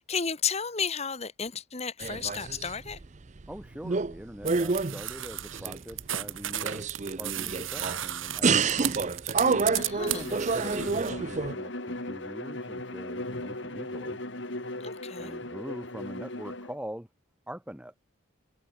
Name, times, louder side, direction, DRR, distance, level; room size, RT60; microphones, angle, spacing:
voice 1, 0.0-3.0 9.7-10.3 14.8-15.4, left 6 dB, 30° left, 1.4 m, -33 dB
sound 1, 2.0-3.1 3.4-4.2 4.4-6.0 6.5-8.0 8.4-11.5, right 4 dB, 35° right, 0.6 m, -28 dB
voice 2, 3.5-9.2 10.1-14.2 15.2-17.1 17.5-17.9, equal, 5° right, 1.0 m, -43 dB
sound 2, 4.5-11.1, right 12 dB, 75° right, 2.8 m, -35 dB
Bowed string instrument, 9.3-16.8, left 1 dB, 60° left, 3.6 m, -38 dB
head